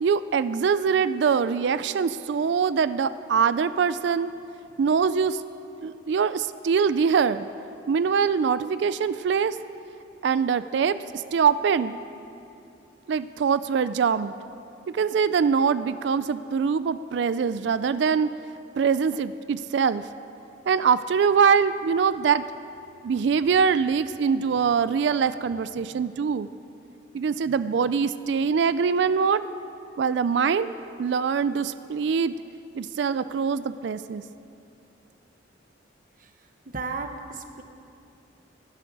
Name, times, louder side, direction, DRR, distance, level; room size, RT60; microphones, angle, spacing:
voice 1, 0.0-4.3 4.8-5.4 5.8-7.5 7.9-9.6 10.2-12.0 13.1-14.3 14.9-18.3 18.8-20.0 20.7-22.5 23.0-26.5 27.1-29.4 30.0-30.7 31.0-32.4 32.8-34.2, right 6 dB, 65° right, 14 dB, 0.3 m, -23 dB
voice 2, 36.7-37.6, right 4 dB, 45° right, 6 dB, 0.9 m, -34 dB
18.5 x 11.5 x 4.8 m, 2.7 s
head